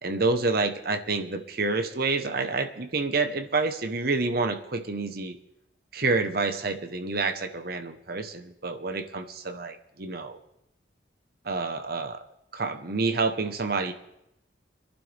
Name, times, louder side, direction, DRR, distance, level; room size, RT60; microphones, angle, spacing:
voice 1, 0.0-5.4 5.9-10.4 11.4-12.2 12.5-13.9, right 3 dB, 55° right, 8 dB, 1.1 m, -28 dB
24.0 x 11.5 x 3.5 m, 0.85 s
head